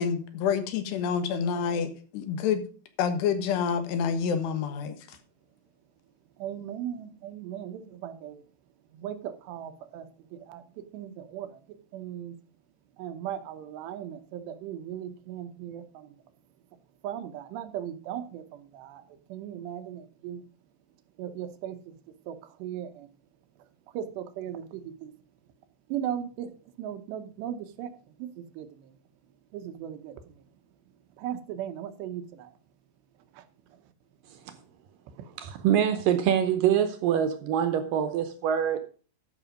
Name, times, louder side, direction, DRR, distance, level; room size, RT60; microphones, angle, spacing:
voice 1, 0.0-2.6 3.0-5.2, left 7 dB, 80° left, 3.5 m, -28 dB
voice 2, 6.4-8.4 8.9-12.4 13.0-16.2 17.0-20.4 21.2-21.9 22.2-23.1 23.6-25.1 25.9-26.5 26.8-29.0 29.5-30.4 31.2-32.6 33.3-33.8 35.1-35.4, right 10 dB, 90° right, 3.2 m, -38 dB
voice 3, 35.4-38.8, right 9 dB, 75° right, 2.2 m, -25 dB
13.0 x 6.1 x 5.0 m
omnidirectional pair, 4.8 m